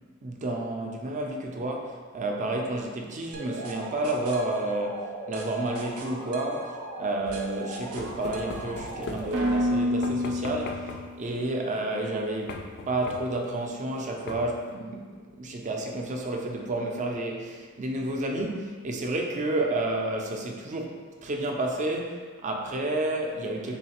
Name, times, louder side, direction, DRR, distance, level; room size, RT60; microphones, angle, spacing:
voice 1, 0.2-10.9 11.2-15.1 15.4-23.8, right 2 dB, 35° right, 2 dB, 0.4 m, -30 dB
sound 1, 3.3-11.1, equal, 90° right, 0.5 m, -32 dB
sound 2, 7.3-9.7 10.0-11.2 12.5-13.5 14.3-14.7, left 3 dB, 55° left, 0.3 m, -40 dB
3.9 x 3.1 x 2.9 m, 1.5 s
head